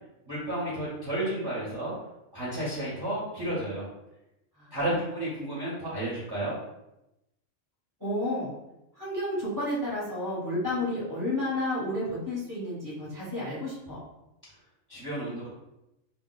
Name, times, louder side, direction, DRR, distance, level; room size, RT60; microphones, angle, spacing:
voice 1, 0.3-2.0 2.3-3.9 4.7-6.6 14.9-15.5, right 1 dB, 25° right, -8 dB, 0.6 m, -32 dB
voice 2, 8.0-8.5 9.0-14.0, left 1 dB, 20° left, -8 dB, 0.8 m, -31 dB
2.1 x 2.1 x 3.8 m, 0.90 s
omnidirectional pair, 1.3 m